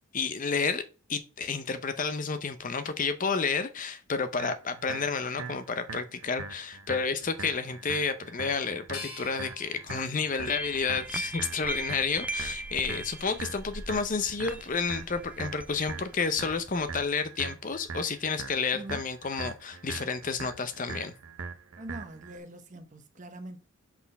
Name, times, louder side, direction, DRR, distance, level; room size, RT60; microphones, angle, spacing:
voice 1, 0.1-0.8 1.1-21.1, left 5 dB, 35° left, 0.6 m, -30 dB
sound 1, 4.4-22.4, right 4 dB, 80° right, 0.8 m, -42 dB
sound 2, 8.9-11.9 12.4-13.2, left 4 dB, 80° left, 1.4 m, -48 dB
sound 3, 10.5-17.1, right 2 dB, 5° right, 0.4 m, -39 dB
voice 2, 18.7-19.0 21.8-23.6, right 1 dB, 35° right, 1.0 m, -43 dB
5.8 x 4.2 x 5.4 m
head